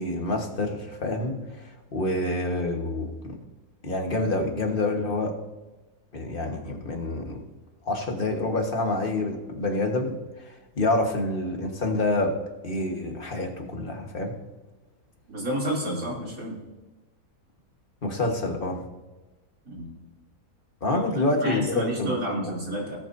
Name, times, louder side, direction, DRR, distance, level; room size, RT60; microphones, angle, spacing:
voice 1, 0.0-3.4 3.8-5.4 6.1-7.4 7.8-12.4 12.6-14.4 18.0-18.8 20.8-22.2, left 2 dB, 35° left, 3 dB, 1.4 m, -27 dB
voice 2, 15.3-16.6 19.7-19.9 20.9-23.0, right 1 dB, 65° right, -3 dB, 3.3 m, -30 dB
18.5 x 8.5 x 2.6 m, 1.1 s
omnidirectional pair, 1.6 m